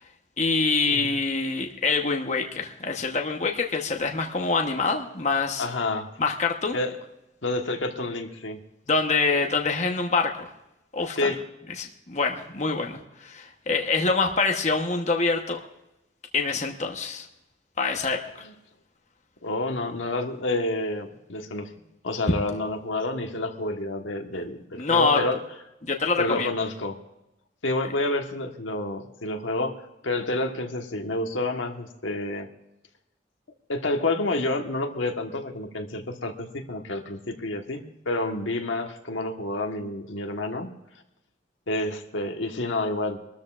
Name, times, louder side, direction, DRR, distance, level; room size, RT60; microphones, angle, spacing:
voice 1, 0.4-5.7 6.2-6.8 8.9-10.5 10.9-11.3 11.8-15.6 16.3-17.3 17.8-18.2 24.8-25.2 25.8-26.5, left 4 dB, 35° left, 3 dB, 1.1 m, -25 dB
voice 2, 5.6-6.1 6.7-7.0 7.4-8.6 11.2-11.4 18.4-18.5 19.4-21.7 22.0-25.4 26.2-27.0 27.6-29.8 30.0-32.5 33.7-40.7 41.7-43.2, left 2 dB, 90° left, 4 dB, 1.4 m, -29 dB
24.5 x 13.0 x 2.5 m, 0.90 s
head